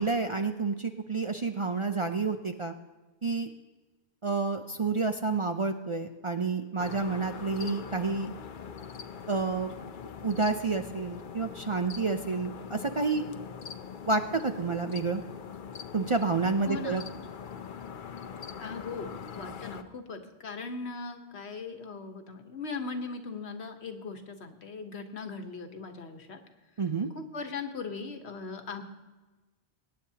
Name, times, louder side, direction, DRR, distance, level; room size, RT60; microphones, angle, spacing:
voice 1, 0.0-2.7 3.2-3.5 4.2-8.3 9.3-9.7 10.2-13.3 14.1-15.2 15.9-17.0 26.8-27.1, right 4 dB, 40° right, 6 dB, 0.5 m, -29 dB
sound 1, 6.8-19.8, left 7 dB, 55° left, 0.7 m, -42 dB
voice 2, 16.7-17.1 18.6-26.4 27.1-28.8, left 4 dB, 80° left, 6 dB, 1.4 m, -39 dB
22.0 x 9.4 x 2.8 m, 1.2 s
omnidirectional pair, 1.1 m